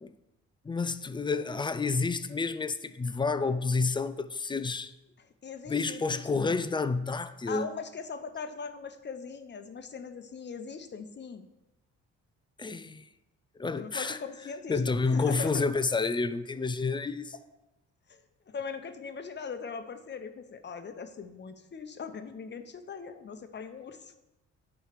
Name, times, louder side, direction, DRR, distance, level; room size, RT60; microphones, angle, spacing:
voice 1, 0.6-4.9 5.7-7.7 12.6-13.1 13.6-14.2 14.7-17.3, left 4 dB, 15° left, 0.4 m, -29 dB
voice 2, 5.2-6.5 7.5-11.5 13.8-15.6 18.1-18.2 18.5-24.1, left 5 dB, 35° left, 0.8 m, -40 dB
9.1 x 3.2 x 6.6 m
cardioid pair, 90°, 30 cm